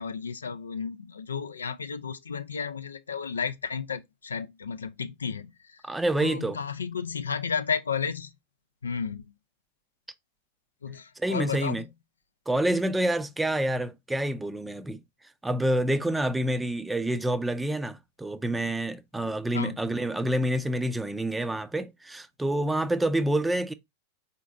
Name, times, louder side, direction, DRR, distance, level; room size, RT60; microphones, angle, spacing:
voice 1, 0.0-5.5 6.2-8.3 8.8-9.3 10.8-11.9 19.5-19.8, left 6 dB, 85° left, 0.4 m, -32 dB
voice 2, 5.8-6.6 11.2-11.9 12.5-15.0 15.4-23.7, right 1 dB, 10° right, 0.5 m, -27 dB
4.3 x 3.9 x 2.4 m
figure-of-eight pair, 95°, 0 cm